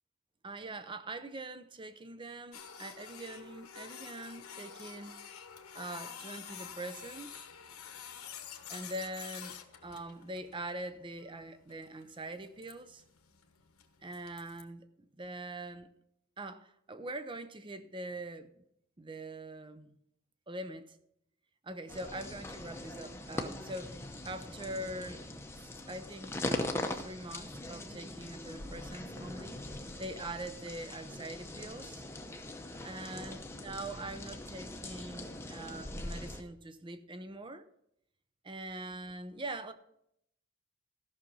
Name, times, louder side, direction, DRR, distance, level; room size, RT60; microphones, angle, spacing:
voice 1, 0.4-5.2 5.7-7.4 8.7-9.5 9.8-13.0 14.0-14.9 15.2-15.9 16.4-18.5 19.0-20.0 20.5-21.0 21.6-25.3 25.5-29.6 30.0-32.0 32.8-37.7 38.4-39.7, right 2 dB, 20° right, 0.6 m, -43 dB
Printer, 2.5-14.6, left 8 dB, 85° left, 1.2 m, -49 dB
sound 1, 21.9-36.4, left 1 dB, 10° left, 0.8 m, -41 dB
14.0 x 6.0 x 5.4 m
head